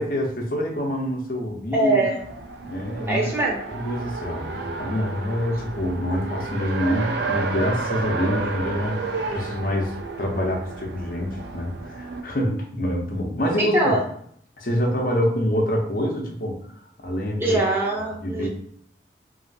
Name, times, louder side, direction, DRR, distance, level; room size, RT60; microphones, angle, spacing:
voice 1, 0.0-2.1 2.6-3.3 3.7-13.9 14.6-16.7 17.0-17.6 18.2-18.5, equal, 50° left, 0 dB, 0.7 m, -26 dB
voice 2, 1.7-2.2 3.1-3.6 13.6-14.0 17.4-18.5, right 2 dB, 15° right, -3 dB, 0.7 m, -22 dB
Race car auto racing, 2.2-12.2, right 4 dB, 75° right, 0.4 m, -31 dB
2.9 x 2.7 x 2.7 m, 0.64 s
head